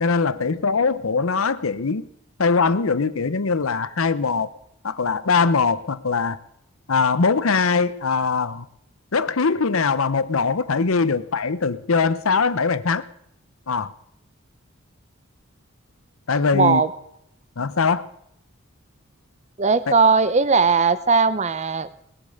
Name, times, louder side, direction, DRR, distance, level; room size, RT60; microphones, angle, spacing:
voice 1, 0.0-2.1 2.4-4.5 4.8-6.4 6.9-8.7 9.1-13.0 13.7-13.9 16.3-16.9 17.6-18.1 19.9-20.0, left 4 dB, 80° left, 15 dB, 0.8 m, -21 dB
voice 2, 16.5-16.9 19.6-21.9, right 4 dB, 30° right, 14 dB, 0.6 m, -18 dB
20.0 x 8.6 x 6.5 m, 0.76 s
head